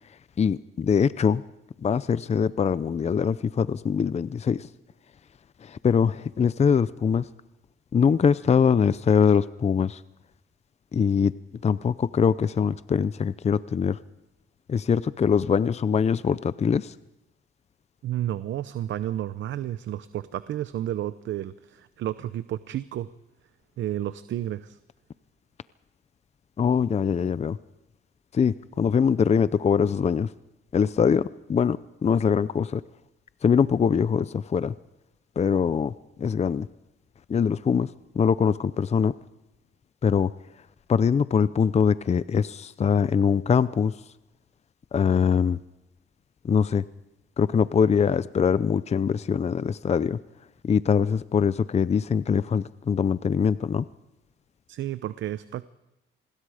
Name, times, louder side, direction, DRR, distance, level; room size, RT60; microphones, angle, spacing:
voice 1, 0.4-1.4 1.8-4.7 5.6-7.2 7.9-10.0 10.9-11.3 11.6-14.0 14.7-16.9 26.6-27.6 28.3-30.3 30.7-32.8 33.4-34.7 35.4-35.9 36.2-36.7 37.3-37.9 38.1-39.1 40.0-40.3 40.9-43.9 44.9-45.6 46.4-46.8 47.4-50.2 50.6-53.8, left 6 dB, 35° left, 16 dB, 0.6 m, -23 dB
voice 2, 18.0-23.1 23.8-24.8 54.7-55.6, right 12 dB, 70° right, 14 dB, 0.8 m, -31 dB
27.0 x 21.0 x 5.0 m, 0.95 s
cardioid pair, 90°, 20 cm